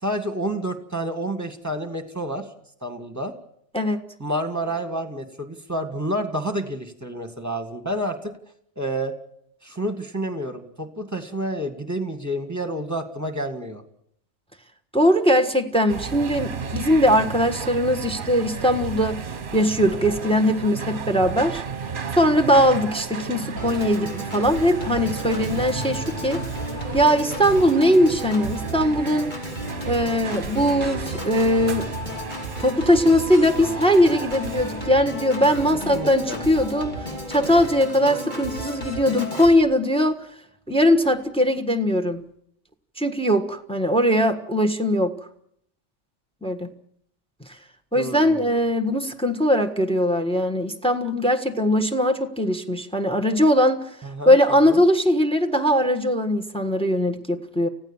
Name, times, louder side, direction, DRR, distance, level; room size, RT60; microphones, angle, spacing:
voice 1, 0.0-2.5 2.8-3.3 4.2-8.3 8.8-9.1 9.6-13.8 24.0-24.2 25.2-25.5 35.9-36.4 47.9-48.6 54.0-54.4 54.7-54.8, right 1 dB, 15° right, 7 dB, 2.1 m, -29 dB
voice 2, 14.9-19.2 19.5-21.6 22.1-26.4 26.9-29.3 29.9-31.9 32.6-36.9 37.3-40.2 40.7-42.2 43.0-45.1 46.4-46.7 47.9-53.9 54.3-57.7, equal, 5° left, 8 dB, 1.4 m, -20 dB
sound 1, 15.9-34.9, right 6 dB, 45° right, 1.2 m, -33 dB
Organ, 23.6-39.6, equal, 40° left, 3.3 m, -34 dB
29.5 x 16.0 x 7.3 m, 0.73 s
omnidirectional pair, 1.2 m